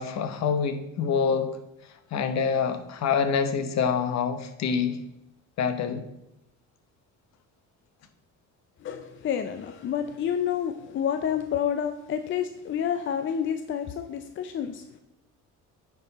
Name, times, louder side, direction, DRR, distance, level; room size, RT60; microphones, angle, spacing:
voice 1, 0.0-1.5 2.1-5.0 5.6-6.0, left 6 dB, 55° left, 9 dB, 0.9 m, -26 dB
voice 2, 8.8-15.0, left 8 dB, 40° left, 8 dB, 0.5 m, -29 dB
9.4 x 4.7 x 4.0 m, 0.88 s
cardioid pair, 115°, 31 cm